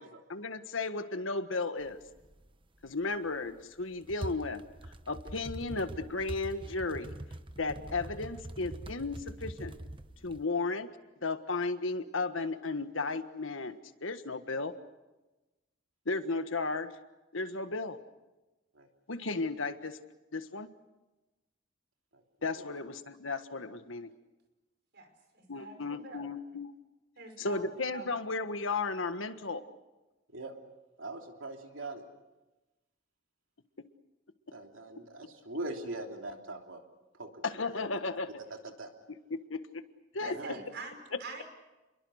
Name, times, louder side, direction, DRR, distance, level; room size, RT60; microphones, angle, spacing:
voice 1, 0.3-2.0 2.8-4.6 5.1-7.1 7.6-9.7 10.2-10.9 11.2-14.7 16.0-16.9 17.3-18.0 19.1-20.0 20.3-20.7 22.4-24.1 25.5-26.7 27.4-29.6 37.4-38.3 39.5-39.6 40.1-40.6, left 3 dB, 85° left, 9 dB, 1.5 m, -34 dB
sound 1, 1.8-1.9 2.2-2.6 3.1-10.4, right 1 dB, 25° right, 1.0 m, -44 dB
voice 2, 24.9-26.2 27.2-27.6 27.9-28.1 40.2-41.4, right 3 dB, 60° right, 5 dB, 5.3 m, -45 dB
voice 3, 31.0-32.0 34.5-36.8 37.1-37.8 38.5-38.9 40.2-40.6, right 2 dB, 80° right, 3 dB, 3.2 m, -42 dB
29.5 x 22.5 x 6.5 m, 1.1 s
head